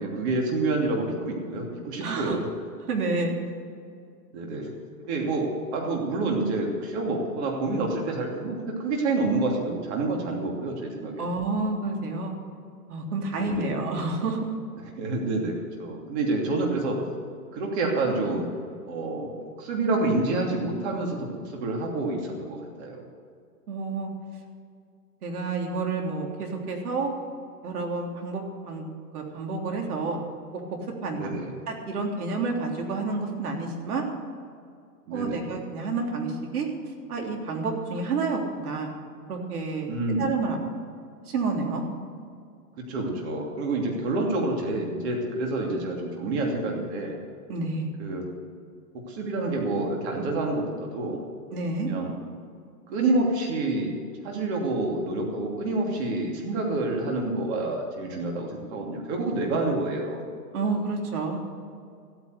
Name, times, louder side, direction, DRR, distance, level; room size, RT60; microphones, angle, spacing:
voice 1, 0.0-2.5 4.3-4.7 5.0-11.3 13.4-13.8 15.0-15.5 15.8-17.0 17.5-18.5 18.9-21.3 21.5-23.0 31.1-31.5 35.1-35.4 39.9-40.3 42.8-47.2 48.0-48.2 48.9-51.2 51.8-52.1 52.9-53.9 54.2-60.2, right 2 dB, 40° right, 0 dB, 2.9 m, -28 dB
voice 2, 2.0-2.4 2.9-3.4 11.2-12.3 12.9-14.5 23.7-24.1 25.2-27.1 27.6-28.9 29.1-30.2 31.0-31.3 31.7-34.0 35.1-36.7 37.1-38.9 39.3-39.9 40.2-40.6 41.3-41.8 47.5-47.9 51.5-51.9 60.5-61.4, right 3 dB, 65° right, 1 dB, 3.5 m, -29 dB
15.0 x 9.3 x 8.1 m, 2.3 s
hypercardioid pair, 145°, 48 cm